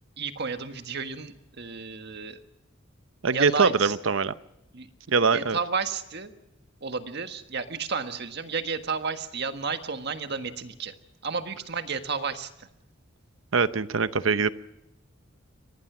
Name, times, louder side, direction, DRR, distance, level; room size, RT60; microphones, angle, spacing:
voice 1, 0.2-2.4 3.3-3.9 4.7-4.9 5.3-6.3 6.8-10.9 11.2-12.7, right 5 dB, 55° right, 8 dB, 1.6 m, -32 dB
voice 2, 3.2-4.3 5.1-5.6 13.5-14.5, right 5 dB, 70° right, 14 dB, 0.8 m, -23 dB
24.5 x 18.5 x 6.1 m, 0.89 s
head